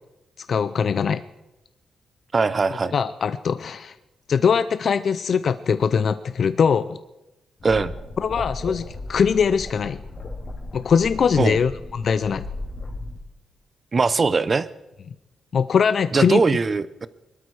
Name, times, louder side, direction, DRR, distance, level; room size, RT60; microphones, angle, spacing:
voice 1, 0.4-1.2 2.9-3.9 4.3-7.0 8.2-10.0 10.7-12.4 15.5-16.4, left 6 dB, 50° left, 13 dB, 0.5 m, -21 dB
voice 2, 2.3-2.9 7.6-7.9 11.4-11.6 13.9-14.7 16.1-17.1, right 4 dB, 30° right, 16 dB, 0.7 m, -20 dB
sound 1, 7.6-13.2, left 2 dB, 35° left, 3.3 m, -35 dB
22.5 x 12.5 x 4.8 m, 0.98 s
cardioid pair, 130°, 0 cm